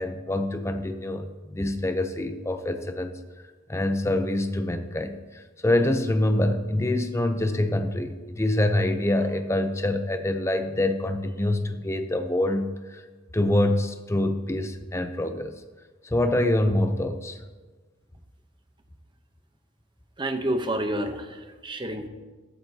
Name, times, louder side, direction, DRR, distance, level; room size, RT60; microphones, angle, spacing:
voice 1, 0.0-3.1 3.7-13.0 13.3-15.6 16.0-17.4, left 1 dB, 15° left, 7 dB, 0.6 m, -25 dB
voice 2, 20.2-22.1, right 1 dB, 25° right, 7 dB, 0.8 m, -29 dB
14.5 x 12.5 x 2.8 m, 1.3 s
head